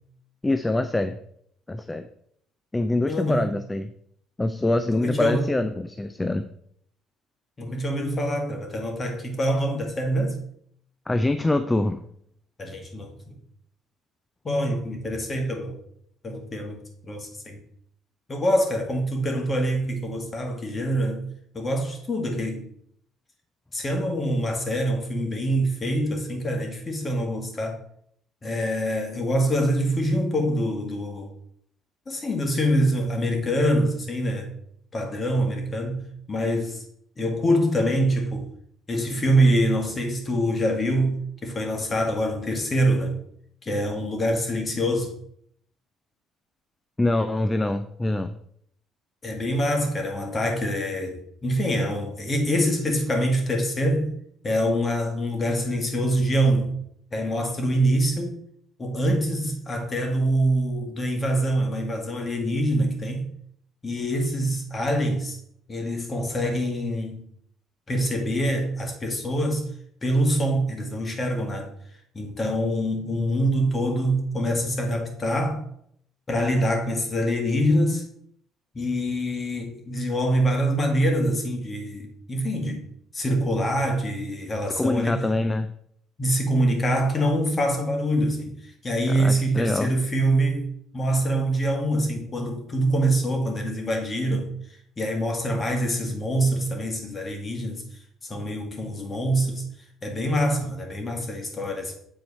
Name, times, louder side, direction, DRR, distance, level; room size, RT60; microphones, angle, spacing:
voice 1, 0.4-1.2 1.7-2.1 2.7-3.9 4.4-6.5 11.1-12.0 47.0-48.4 84.8-85.7 89.1-89.9, left 2 dB, 15° left, 0.4 m, -24 dB
voice 2, 3.1-3.5 4.8-5.5 7.6-10.4 12.6-13.4 14.4-15.8 16.2-17.6 18.3-21.3 21.5-22.7 23.7-27.8 28.4-31.3 32.1-34.5 34.9-36.8 37.2-38.5 38.9-43.2 43.6-45.1 49.2-54.1 54.4-56.8 57.1-58.4 58.8-63.3 63.8-65.4 65.7-67.3 67.9-69.7 70.0-71.7 72.1-75.7 76.3-78.1 78.7-85.3 86.2-94.5 95.0-97.9 98.2-99.6 100.0-101.9, equal, 30° left, 1.8 m, -25 dB
7.4 x 4.4 x 4.2 m
supercardioid pair, 85°, 0 cm